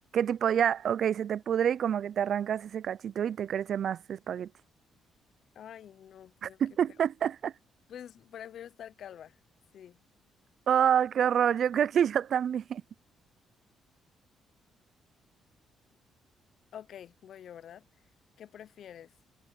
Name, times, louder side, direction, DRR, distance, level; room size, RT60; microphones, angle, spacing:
voice 1, 0.1-4.5 6.4-7.5 10.7-12.8, right 9 dB, 60° right, 0.3 m, -27 dB
voice 2, 5.6-6.6 7.9-9.4 9.7-10.0 16.7-17.9 18.4-19.1, left 9 dB, 65° left, 0.5 m, -47 dB
cardioid pair, 90°, 0 cm